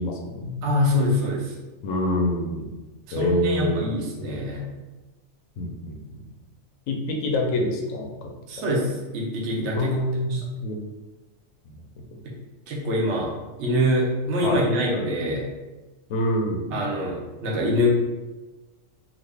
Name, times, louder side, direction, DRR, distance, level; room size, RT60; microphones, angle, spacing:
voice 1, 0.0-0.6 1.8-2.7 3.1-3.8 4.1-4.3 5.6-6.3 6.9-8.3 8.6-8.7 9.7-10.8 11.7-11.8 12.1-12.2 14.4-14.6 16.1-16.7, left 1 dB, 85° left, 2 dB, 1.0 m, -26 dB
voice 2, 0.6-1.5 3.1-4.6 8.5-9.9 10.3-10.4 12.7-13.3 13.6-15.4 16.7-17.9, equal, 65° right, -2 dB, 0.9 m, -24 dB
2.9 x 2.5 x 3.3 m, 1.1 s
omnidirectional pair, 1.3 m